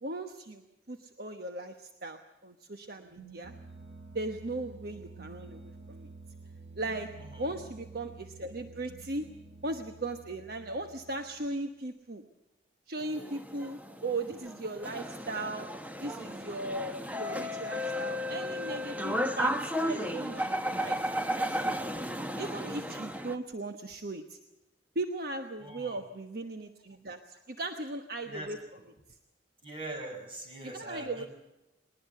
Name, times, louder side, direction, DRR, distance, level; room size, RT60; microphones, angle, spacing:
voice 1, 0.0-3.5 4.1-6.1 6.8-7.1 7.4-9.3 9.6-12.2 12.9-15.7 16.0-24.4 24.9-28.6 29.1-29.2 30.6-31.2, right 2 dB, 60° right, 6 dB, 1.1 m, -38 dB
sound 1, 2.9-11.7, right 3 dB, 80° right, 1.9 m, -50 dB
voice 2, 7.2-7.5 25.6-26.0 28.2-28.8 29.6-31.3, right 1 dB, 30° right, 3 dB, 5.6 m, -42 dB
sound 2, 13.0-23.4, equal, 10° right, 1.0 m, -34 dB
21.0 x 19.5 x 6.7 m, 0.94 s
head